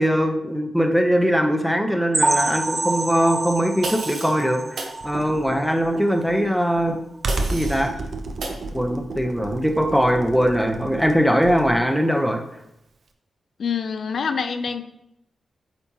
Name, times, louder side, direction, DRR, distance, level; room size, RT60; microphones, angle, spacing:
voice 1, 0.0-7.0 7.5-7.9 8.7-12.4, equal, ahead, 4 dB, 0.8 m, -21 dB
sound 1, 2.1-5.8 6.1-6.3 6.7-6.8 7.3-7.4, right 2 dB, 25° right, 0.3 m, -27 dB
sound 2, 3.8-4.4 4.8-5.0 7.3-7.9 8.4-8.6, right 2 dB, 85° right, 1.2 m, -31 dB
Computer keyboard, 5.0-11.9, right 2 dB, 60° right, 0.7 m, -31 dB
voice 2, 13.6-14.8, left 6 dB, 65° left, 9 dB, 0.5 m, -26 dB
8.3 x 4.3 x 3.0 m, 0.82 s
cardioid pair, 90°, 0 cm